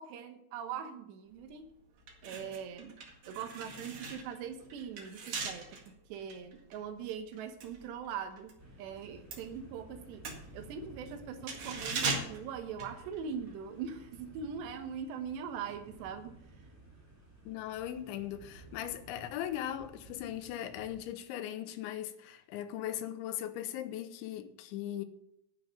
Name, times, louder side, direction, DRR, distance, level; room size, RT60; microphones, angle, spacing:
voice 1, 0.0-1.7 2.2-3.0 3.3-10.2 10.5-16.7, right 7 dB, 75° right, 3.2 m, -41 dB
sound 1, 1.4-1.6 2.0-8.6 8.9-13.5 13.8-14.0, right 3 dB, 50° right, 2.7 m, -40 dB
sound 2, 8.6-21.0, right 2 dB, 10° right, 0.9 m, -55 dB
voice 2, 17.5-25.1, left 11 dB, 90° left, 3.3 m, -39 dB
10.5 x 6.5 x 8.8 m
omnidirectional pair, 5.1 m